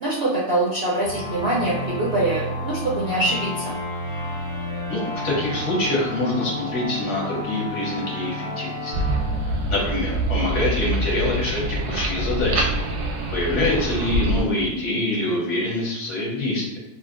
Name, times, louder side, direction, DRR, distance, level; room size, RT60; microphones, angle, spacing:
voice 1, 0.0-3.7, right 2 dB, 70° right, -5 dB, 0.6 m, -24 dB
sound 1, 1.0-10.4, left 1 dB, 25° left, 0.8 m, -31 dB
voice 2, 4.9-8.9 9.7-12.7 13.3-16.8, left 2 dB, 60° left, -4 dB, 0.9 m, -25 dB
sound 2, 8.9-14.4, right 1 dB, 85° right, 1.1 m, -25 dB
2.7 x 2.5 x 2.4 m, 0.99 s
omnidirectional pair, 1.6 m